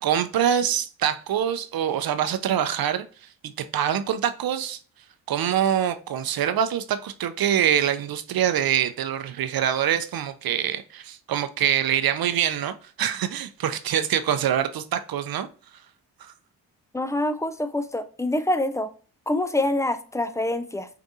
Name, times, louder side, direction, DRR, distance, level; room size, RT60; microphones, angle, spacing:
voice 1, 0.0-4.8 5.3-15.5 16.2-16.3, right 9 dB, 55° right, 0.6 m, -25 dB
voice 2, 16.9-18.9 19.3-20.9, left 1 dB, 10° left, 0.3 m, -25 dB
4.7 x 2.5 x 2.7 m
supercardioid pair, 45°, 44 cm